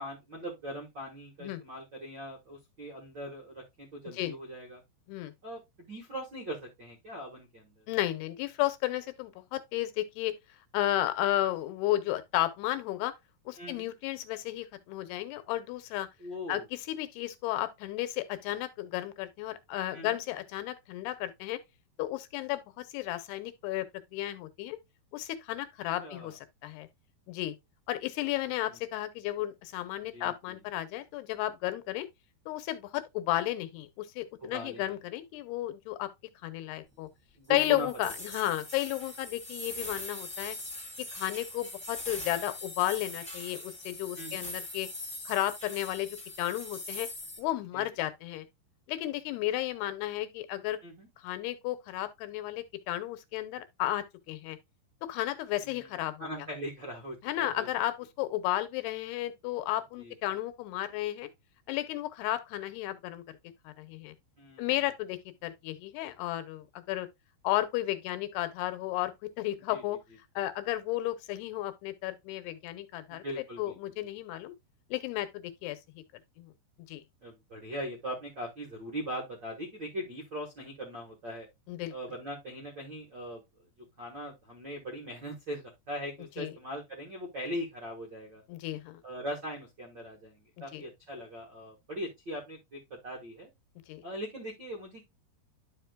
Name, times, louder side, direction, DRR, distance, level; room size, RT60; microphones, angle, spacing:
voice 1, 0.0-4.8 5.4-7.8 13.6-13.9 16.2-16.6 19.9-20.2 26.0-26.3 28.4-28.8 30.1-30.6 34.4-34.9 37.4-37.9 44.2-44.4 47.7-47.8 50.8-51.1 55.6-55.9 56.2-57.7 60.0-60.1 64.4-64.7 69.7-69.8 73.1-74.1 77.2-81.5 81.9-83.4 84.0-88.4 89.0-93.5 94.0-95.0, equal, 65° right, 1.1 m, -40 dB
voice 2, 7.9-10.3 10.7-13.1 13.5-16.1 16.5-21.6 22.0-23.9 24.1-24.8 25.1-26.9 27.3-27.5 27.9-32.1 32.5-36.1 36.4-37.1 37.5-40.6 41.0-44.9 45.3-46.1 46.4-47.1 47.4-48.5 48.9-50.8 51.2-54.6 55.1-56.5 57.2-61.3 61.7-63.2 63.7-64.1 64.6-67.1 67.4-69.1 69.4-70.0 70.4-73.2 73.6-74.5 74.9-76.0 76.4-76.5 76.9-77.0 81.7-81.9 86.4-86.5 88.5-89.0 90.7-90.8 93.9-94.0, left 14 dB, 80° left, 2.7 m, -33 dB
sound 1, 37.6-47.4, left 1 dB, 5° left, 0.8 m, -42 dB
11.0 x 5.1 x 2.2 m
omnidirectional pair, 4.7 m